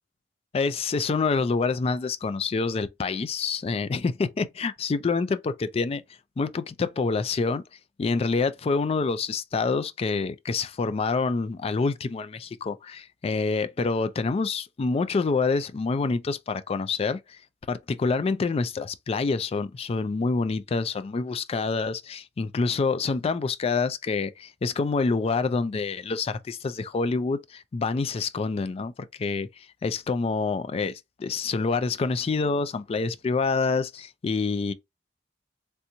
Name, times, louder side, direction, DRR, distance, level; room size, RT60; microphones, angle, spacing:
voice 1, 0.5-6.0 6.4-7.6 8.0-17.4 17.7-28.9 29.2-34.7, left 4 dB, 35° left, 0.3 m, -27 dB
3.3 x 2.8 x 2.6 m
head